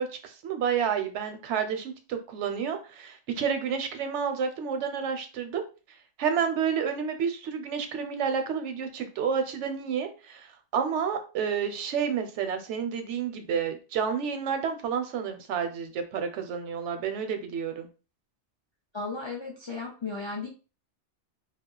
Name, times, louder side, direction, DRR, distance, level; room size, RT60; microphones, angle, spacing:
voice 1, 0.0-5.6 6.2-10.5 10.7-17.9, right 7 dB, 80° right, 7 dB, 0.9 m, -30 dB
voice 2, 18.9-20.5, left 4 dB, 50° left, -1 dB, 0.3 m, -35 dB
2.3 x 2.0 x 3.7 m, 0.33 s
omnidirectional pair, 1.2 m